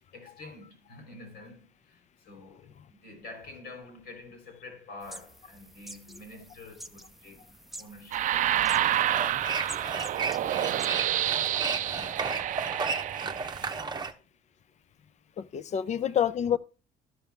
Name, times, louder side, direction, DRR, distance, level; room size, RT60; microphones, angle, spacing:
voice 1, 0.1-8.3 9.1-9.3 10.3-11.5 11.9-12.9 13.2-13.9 15.7-16.2, left 3 dB, 70° left, 3.6 m, -49 dB
sound 1, 5.0-10.9, right 1 dB, ahead, 0.6 m, -48 dB
sound 2, 8.1-13.8, right 12 dB, 50° right, 0.4 m, -28 dB
sound 3, 8.7-14.1, right 4 dB, 25° right, 0.9 m, -34 dB
voice 2, 15.4-16.6, left 9 dB, 45° left, 0.6 m, -27 dB
12.5 x 5.6 x 3.4 m
cardioid pair, 110°, 17 cm